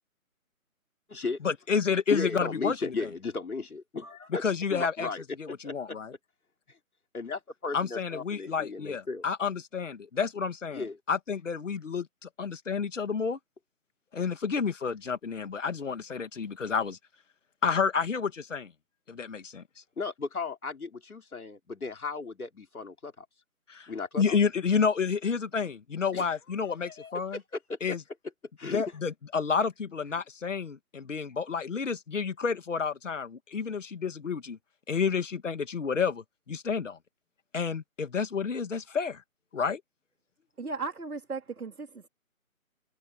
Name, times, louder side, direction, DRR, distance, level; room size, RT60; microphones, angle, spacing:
voice 1, 1.4-2.9 4.4-5.1 5.4-6.1 7.7-13.4 14.1-17.0 17.6-18.7 19.1-19.6 23.7-23.9 24.2-27.4 27.8-28.0 28.7-34.6 34.9-37.0 37.5-39.2 39.5-39.8, left 5 dB, 55° left, 2.7 m, -30 dB
voice 2, 2.1-6.0 7.1-9.2 10.7-11.0 20.0-23.3 23.9-24.4 26.1-26.3 26.7-27.1 27.7-28.0 28.6-28.8, left 4 dB, 80° left, 3.8 m, -36 dB
voice 3, 40.6-42.1, right 4 dB, 85° right, 3.5 m, -36 dB
figure-of-eight pair, 160°, 43 cm